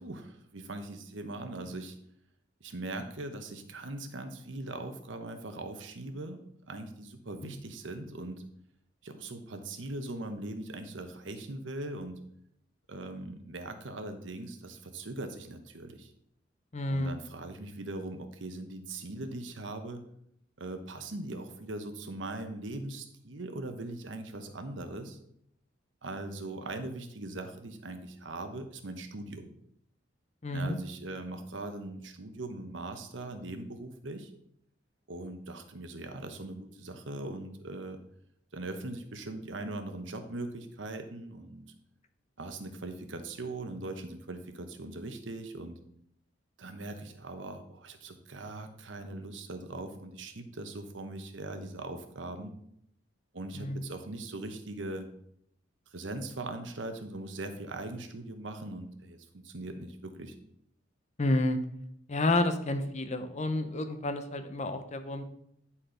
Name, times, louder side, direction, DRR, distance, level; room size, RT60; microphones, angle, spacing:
voice 1, 0.0-2.0 2.6-6.4 6.7-8.4 9.0-12.2 12.9-16.1 16.9-20.0 20.6-25.2 26.0-29.4 30.5-34.3 35.1-38.0 38.5-41.6 42.4-45.8 46.6-52.5 53.3-55.1 55.9-60.4, right 2 dB, 75° right, 7 dB, 1.1 m, -40 dB
voice 2, 16.7-17.2 30.4-30.8 53.5-53.9 61.2-61.6 62.1-65.2, left 2 dB, 40° left, 8 dB, 0.8 m, -30 dB
9.9 x 4.3 x 5.0 m, 0.72 s
head